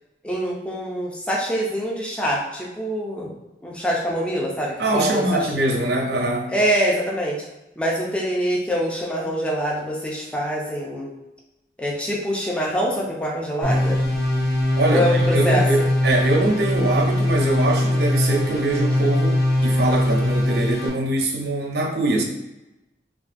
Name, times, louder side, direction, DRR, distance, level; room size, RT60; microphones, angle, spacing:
voice 1, 0.2-3.3 3.6-5.5 6.5-7.4 7.8-11.1 11.8-14.0 14.9-15.9, equal, 5° left, -3 dB, 0.5 m, -24 dB
voice 2, 4.8-6.5 14.8-22.2, right 2 dB, 60° right, 1 dB, 0.6 m, -23 dB
sound 1, 13.6-20.9, left 1 dB, 70° left, 0.9 m, -21 dB
3.5 x 2.4 x 2.5 m, 0.99 s
head